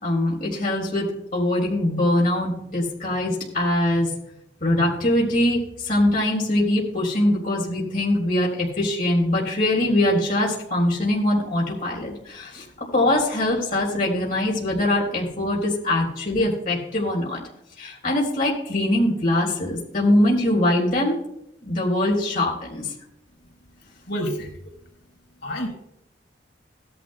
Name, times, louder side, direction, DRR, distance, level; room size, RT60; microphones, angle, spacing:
voice 1, 0.0-4.1 4.6-17.4 17.8-21.2 21.6-22.9, left 1 dB, 50° left, -4 dB, 3.9 m, -22 dB
voice 2, 24.1-24.6 25.4-25.7, equal, 85° left, 0 dB, 4.3 m, -28 dB
17.5 x 11.5 x 2.3 m, 0.76 s
head